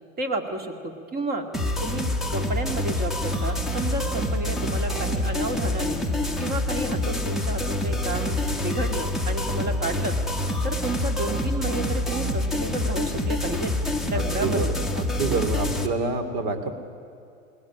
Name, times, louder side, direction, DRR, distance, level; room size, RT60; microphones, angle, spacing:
voice 1, 0.2-1.5 1.8-6.0 6.4-10.2 10.6-13.7 14.1-14.7, right 2 dB, 20° right, 6 dB, 2.1 m, -31 dB
sound 1, 1.5-15.9, left 1 dB, ahead, 1.3 m, -26 dB
voice 2, 14.1-16.7, right 3 dB, 40° right, 8 dB, 2.7 m, -28 dB
20.5 x 16.5 x 10.0 m, 2.6 s
hypercardioid pair, 115°, 41 cm